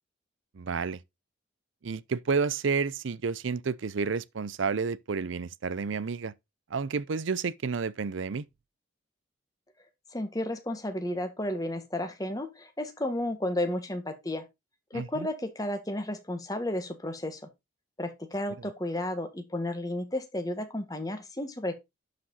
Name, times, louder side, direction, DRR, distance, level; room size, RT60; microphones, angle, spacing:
voice 1, 0.5-1.0 1.8-6.3 6.7-8.5 14.9-15.3, right 5 dB, 80° right, 0.5 m, -30 dB
voice 2, 10.1-14.4 14.9-17.4 18.0-21.7, left 1 dB, 20° left, 1.5 m, -32 dB
11.5 x 5.0 x 4.0 m
head